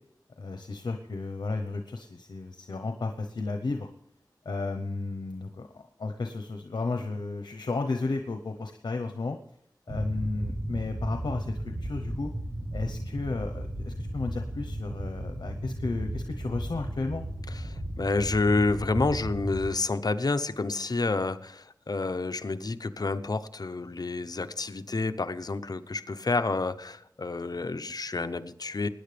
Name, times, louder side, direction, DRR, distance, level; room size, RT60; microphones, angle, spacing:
voice 1, 0.4-3.9 4.4-9.4 9.9-12.3 12.7-17.2, left 3 dB, 90° left, 5 dB, 0.9 m, -33 dB
sound 1, 9.9-19.7, right 1 dB, 25° right, 1.5 m, -35 dB
voice 2, 17.5-28.9, left 3 dB, 60° left, 10 dB, 0.8 m, -29 dB
20.0 x 9.8 x 3.4 m, 0.74 s
wide cardioid pair, 45°, 7 cm